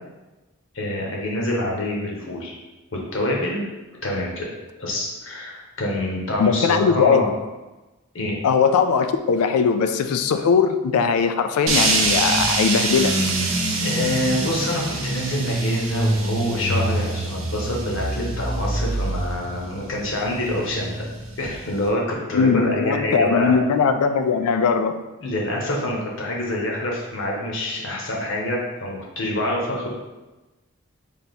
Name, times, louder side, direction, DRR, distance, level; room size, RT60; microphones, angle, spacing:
voice 1, 0.7-2.5 2.9-3.6 4.0-4.4 4.8-7.3 8.1-8.4 13.8-21.1 21.4-23.6 25.2-29.9, left 1 dB, 60° left, -2 dB, 0.9 m, -26 dB
voice 2, 6.4-7.3 8.4-13.1 22.3-24.9, left 5 dB, 90° left, 9 dB, 0.3 m, -19 dB
sound 1, 11.7-21.9, right 2 dB, 65° right, 0.7 m, -25 dB
3.4 x 2.8 x 4.1 m, 1.1 s
head